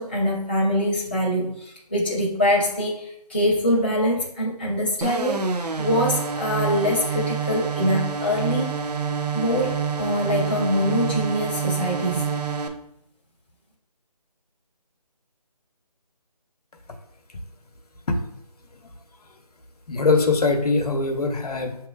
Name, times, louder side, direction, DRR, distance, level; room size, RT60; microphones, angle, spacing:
voice 1, 0.0-5.4 5.8-8.7 9.3-12.2, equal, 15° left, -8 dB, 0.5 m, -24 dB
sound 1, 5.0-12.7, right 6 dB, 75° right, 0.6 m, -27 dB
voice 2, 19.9-21.8, left 3 dB, 70° left, 4 dB, 0.8 m, -21 dB
5.7 x 3.0 x 2.4 m, 0.76 s
figure-of-eight pair, 175°, 20 cm